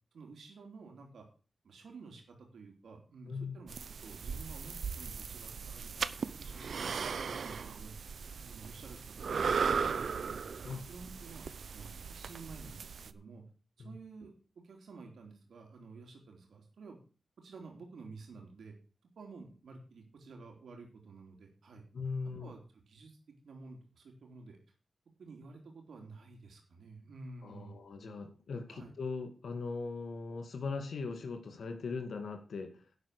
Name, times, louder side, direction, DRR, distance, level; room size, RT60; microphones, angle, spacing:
voice 1, 0.1-1.2 1.6-3.7 4.0-7.9 8.4-9.4 9.7-10.3 10.9-13.4 13.8-17.0 17.4-18.8 19.2-21.9 22.4-23.2 23.4-24.6 25.2-27.7 28.7-28.9, right 3 dB, 90° right, 2 dB, 3.4 m, -51 dB
sound 1, 3.7-13.1, right 6 dB, 70° right, 0.8 m, -37 dB
voice 2, 21.9-22.5 27.4-32.9, left 4 dB, 75° left, 6 dB, 2.2 m, -40 dB
11.5 x 8.1 x 6.7 m, 0.36 s
wide cardioid pair, 150°, 0 cm